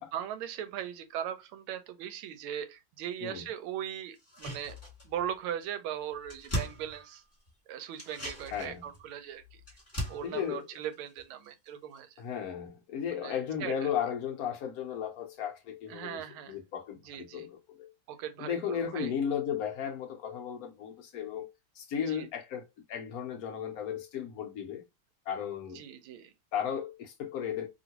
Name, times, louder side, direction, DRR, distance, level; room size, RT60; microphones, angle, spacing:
voice 1, 0.1-4.8 5.0-7.2 7.7-9.4 10.1-12.1 13.1-13.9 15.9-16.6 17.0-17.5 18.1-19.1 22.1-22.3 25.7-26.3, right 10 dB, 90° right, 1.4 m, -39 dB
sound 1, 4.2-5.3 5.6-5.7 6.0-7.5 7.9-11.7 12.0-12.1, equal, 15° left, 1.3 m, -40 dB
voice 2, 8.5-8.8 10.2-10.7 12.2-16.2 16.5-17.9 18.4-21.5 21.8-24.8 25.3-25.8 26.5-27.7, left 8 dB, 75° left, 0.8 m, -35 dB
3.0 x 2.8 x 2.8 m
omnidirectional pair, 2.3 m